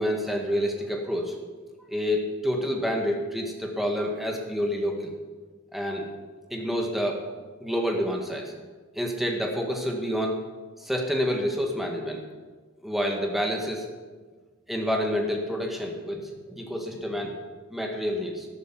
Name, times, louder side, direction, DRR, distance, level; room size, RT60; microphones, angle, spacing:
voice 1, 0.0-1.4 1.9-5.1 5.7-6.1 6.5-7.2 7.6-8.5 8.9-10.4 10.8-12.2 12.8-13.9 14.7-17.4 17.7-18.5, equal, ahead, 0 dB, 1.8 m, -28 dB
13.0 x 12.0 x 6.0 m, 1.4 s
head